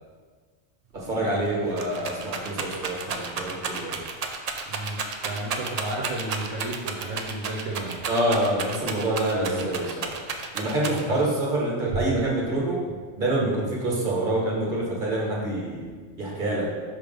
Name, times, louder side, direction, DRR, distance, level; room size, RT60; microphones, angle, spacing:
voice 1, 0.9-4.0 8.1-10.1 10.5-12.8 13.2-16.7, right 1 dB, 45° right, -4 dB, 1.6 m, -26 dB
Rattle, 1.0-1.1 1.4-11.3 11.9-12.5, right 5 dB, 60° right, 0.4 m, -32 dB
voice 2, 4.7-8.0 10.9-11.2, right 2 dB, 80° right, -2 dB, 1.2 m, -33 dB
5.7 x 3.5 x 5.2 m, 1.5 s
omnidirectional pair, 1.2 m